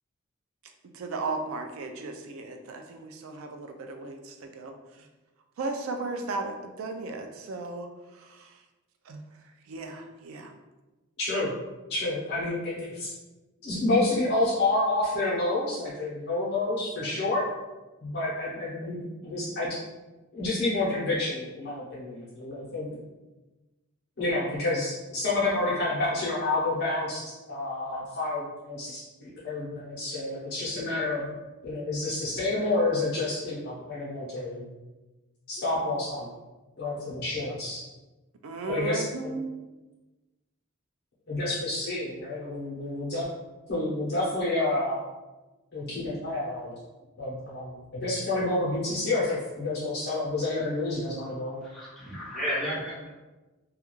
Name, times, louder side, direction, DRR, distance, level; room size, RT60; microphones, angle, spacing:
voice 1, 0.9-5.1 5.6-8.6 9.1-9.2 9.7-10.5 38.4-39.4, right 3 dB, 75° right, 5 dB, 0.3 m, -36 dB
voice 2, 11.2-11.5 11.9-13.1 13.6-17.4 18.0-19.7 20.3-22.9 24.2-27.2 27.5-31.3 31.6-34.7 35.5-36.3 36.8-37.8 38.7-39.4 41.3-43.3 43.7-45.0 45.7-46.8 47.2-51.7, left 2 dB, 50° left, -9 dB, 0.7 m, -29 dB
voice 3, 51.6-53.1, equal, ahead, -8 dB, 0.5 m, -33 dB
2.3 x 2.2 x 2.9 m, 1.1 s
head